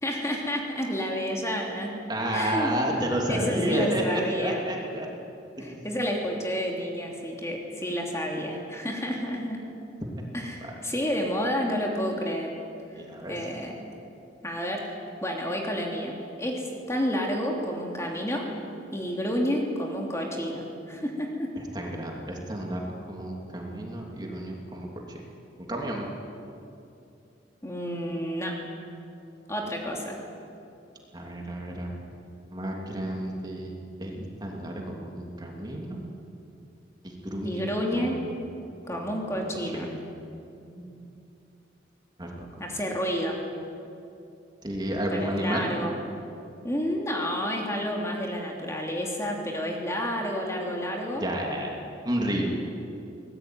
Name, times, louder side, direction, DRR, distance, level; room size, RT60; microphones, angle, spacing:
voice 1, 0.0-1.9 2.3-2.7 3.3-4.6 5.6-9.6 10.3-12.5 13.3-13.7 14.4-18.5 18.9-21.5 27.6-28.6 29.5-30.2 37.4-38.2 38.9-39.9 42.6-43.4 45.1-45.9 46.6-51.2, equal, 15° left, 0 dB, 3.2 m, -30 dB
voice 2, 2.1-5.1 5.6-5.8 10.6-10.7 13.0-13.3 21.6-22.8 23.1-24.9 25.7-26.1 31.1-31.9 32.5-33.7 34.0-36.0 37.0-38.2 38.9-39.4 39.7-40.1 40.8-40.9 42.2-42.6 44.6-45.8 51.1-51.7 52.0-52.5, right 1 dB, 20° right, -1 dB, 3.0 m, -31 dB
23.0 x 19.5 x 9.5 m, 2.7 s
head